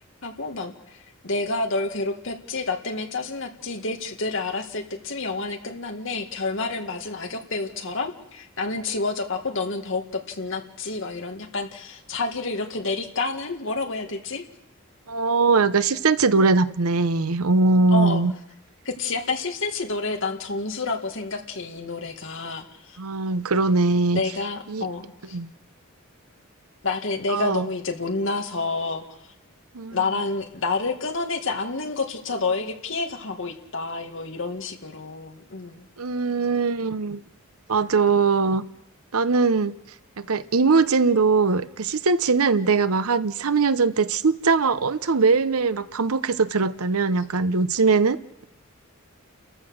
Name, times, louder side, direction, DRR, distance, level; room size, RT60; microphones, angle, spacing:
voice 1, 0.2-14.4 17.9-18.2 18.9-23.0 24.1-25.4 26.8-29.2 29.9-35.9, left 3 dB, 60° left, 2.0 m, -29 dB
voice 2, 15.1-18.3 23.0-24.2 24.7-24.9 25.3-25.5 27.3-27.7 29.7-30.0 36.0-37.2 37.7-38.7 39.1-39.7 40.2-48.4, right 4 dB, 85° right, 0.8 m, -21 dB
30.0 x 14.5 x 6.4 m
head